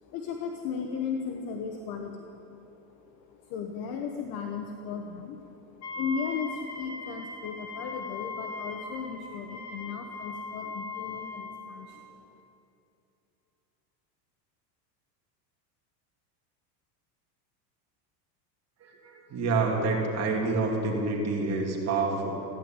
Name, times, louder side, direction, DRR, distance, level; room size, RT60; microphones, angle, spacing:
voice 1, 0.0-12.4, left 6 dB, 45° left, 4 dB, 1.2 m, -36 dB
Wind instrument woodwind instrument, 5.8-11.7, left 3 dB, 30° left, 1.5 m, -39 dB
voice 2, 18.8-22.3, right 3 dB, 30° right, 0 dB, 3.0 m, -28 dB
15.5 x 10.5 x 8.9 m, 2.9 s
supercardioid pair, 140°, 49 cm